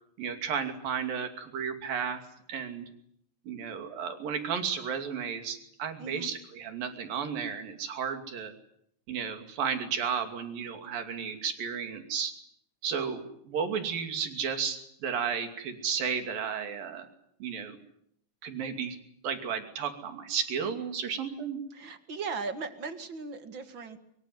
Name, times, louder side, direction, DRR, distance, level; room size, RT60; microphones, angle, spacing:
voice 1, 0.2-2.2 2.5-2.9 3.5-8.5 9.1-12.3 12.8-17.1 17.4-17.8 18.4-19.0 19.2-21.6, right 7 dB, 90° right, 6 dB, 4.5 m, -33 dB
voice 2, 6.0-6.3 21.7-24.0, right 4 dB, 40° right, 9 dB, 2.2 m, -38 dB
24.0 x 22.5 x 9.5 m, 0.72 s
omnidirectional pair, 3.9 m